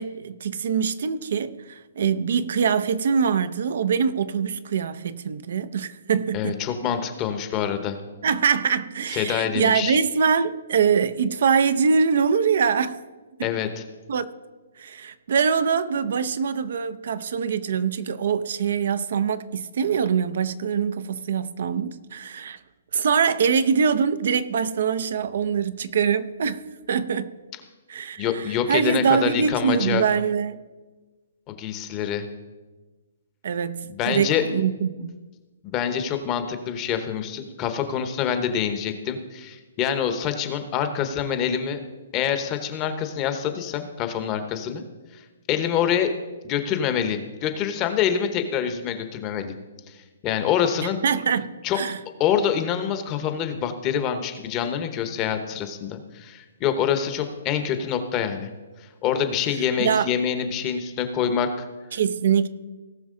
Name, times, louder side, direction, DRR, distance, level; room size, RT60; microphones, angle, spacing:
voice 1, 0.0-6.6 8.2-13.0 13.4-13.5 14.1-14.2 14.8-22.6 22.9-26.6 26.9-27.3 27.9-30.6 33.4-35.2 51.0-52.0 59.8-60.1 61.9-62.5, right 6 dB, 60° right, 0.6 m, -23 dB
voice 2, 6.3-8.0 9.1-10.0 13.4-13.8 28.2-30.0 31.5-32.2 33.9-34.4 35.6-41.8 42.1-44.8 45.1-45.2 45.5-46.1 46.4-49.5 49.9-51.0 51.6-51.8 52.2-58.5 59.0-61.7, left 8 dB, 25° left, 0.9 m, -26 dB
18.0 x 6.0 x 3.8 m
hypercardioid pair, 160°, 0 cm